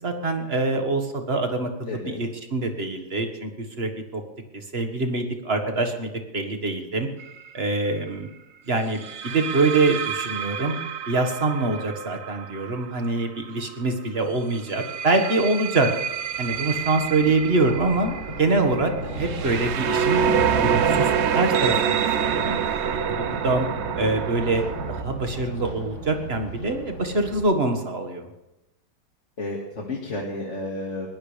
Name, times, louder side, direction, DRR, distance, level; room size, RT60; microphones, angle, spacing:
voice 1, 0.0-3.5 3.8-4.2 4.5-7.1 7.5-8.3 8.7-10.8 11.0-15.9 16.4-20.2 20.6-22.6 23.2-23.7 24.0-24.6 25.0-28.3, right 3 dB, 35° right, 5 dB, 1.8 m, -25 dB
voice 2, 1.9-2.2 17.2-17.3 29.4-31.1, left 2 dB, 45° left, -1 dB, 2.3 m, -32 dB
sound 1, 7.2-7.5 9.0-13.7 14.5-25.0, right 8 dB, 55° right, 0.8 m, -27 dB
Thunder, 16.2-27.4, right 2 dB, 75° right, 7.0 m, -34 dB
21.5 x 18.5 x 3.4 m, 0.96 s
omnidirectional pair, 1.8 m